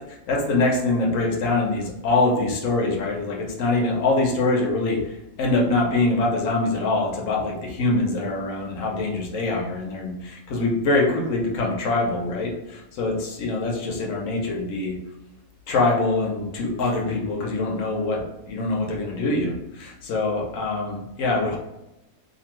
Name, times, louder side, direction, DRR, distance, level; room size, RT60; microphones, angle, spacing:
voice 1, 0.3-15.0 15.7-21.6, left 2 dB, 70° left, -1 dB, 1.0 m, -24 dB
2.6 x 2.5 x 3.0 m, 0.93 s
omnidirectional pair, 1.5 m